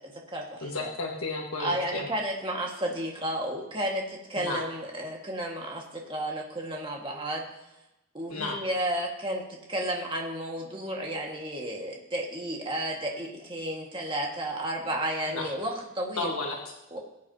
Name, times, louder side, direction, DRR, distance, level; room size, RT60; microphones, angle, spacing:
voice 1, 0.0-0.9 1.6-7.4 8.1-16.3 16.9-17.0, right 1 dB, 20° right, -1 dB, 1.7 m, -32 dB
voice 2, 0.6-2.1 4.4-4.6 8.3-8.6 15.3-15.5 16.2-16.7, left 2 dB, 75° left, 0 dB, 1.5 m, -33 dB
20.0 x 8.5 x 2.8 m, 0.96 s
head